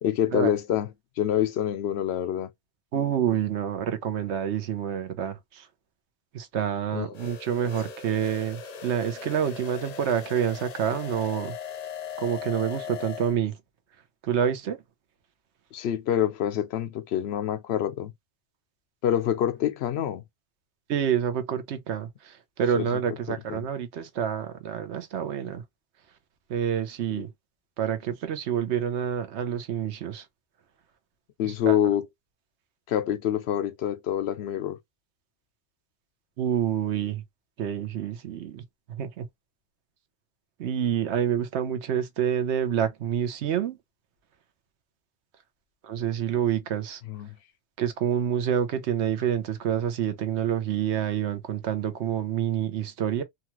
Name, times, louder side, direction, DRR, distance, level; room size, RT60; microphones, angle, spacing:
voice 1, 0.0-0.9 1.2-2.5 6.9-7.1 15.7-18.1 19.0-20.2 22.8-23.0 23.3-23.6 27.1-27.3 31.4-32.1 32.9-34.8 47.1-47.4, left 10 dB, 70° left, 0.8 m, -26 dB
voice 2, 2.9-5.6 6.3-11.5 12.2-13.6 14.2-14.8 20.9-25.6 26.5-27.3 27.8-30.2 31.4-31.8 36.4-37.2 37.6-38.6 38.9-39.3 40.6-43.8 45.8-47.0 47.8-53.2, right 9 dB, 80° right, 1.0 m, -28 dB
sound 1, 7.1-13.4, left 7 dB, 55° left, 0.4 m, -39 dB
2.9 x 2.3 x 2.9 m
omnidirectional pair, 1.1 m